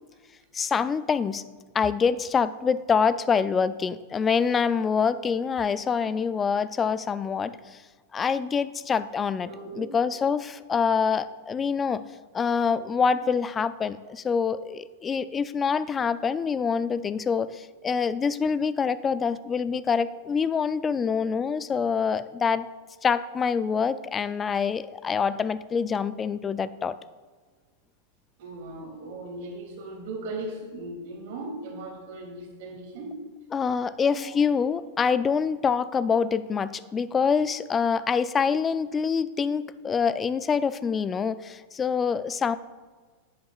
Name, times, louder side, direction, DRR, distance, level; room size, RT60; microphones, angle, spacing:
voice 1, 0.5-1.4 1.7-7.8 8.1-9.5 9.8-12.0 12.3-22.7 23.0-27.0 33.5-42.6, left 6 dB, 20° left, 15 dB, 0.3 m, -25 dB
voice 2, 9.5-9.9 10.2-10.3 28.4-33.2 34.1-34.4 35.6-35.7, right 2 dB, 60° right, 0 dB, 2.7 m, -38 dB
10.5 x 8.5 x 2.4 m, 1.4 s
supercardioid pair, 135°, 0 cm